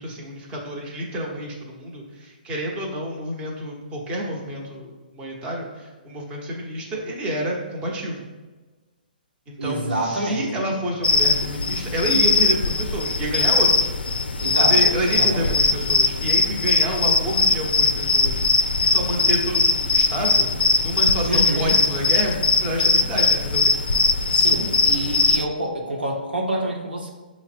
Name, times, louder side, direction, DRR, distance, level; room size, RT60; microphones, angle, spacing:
voice 1, 0.0-8.2 9.5-13.9 14.6-23.7, right 1 dB, 20° right, -2 dB, 0.9 m, -29 dB
voice 2, 9.6-10.7 14.4-15.7 21.2-21.8 24.3-27.1, right 1 dB, 90° right, 0 dB, 0.9 m, -27 dB
sound 1, 11.0-25.5, left 4 dB, 85° left, 0.3 m, -20 dB
5.5 x 2.1 x 4.4 m, 1.3 s
hypercardioid pair, 130°, 5 cm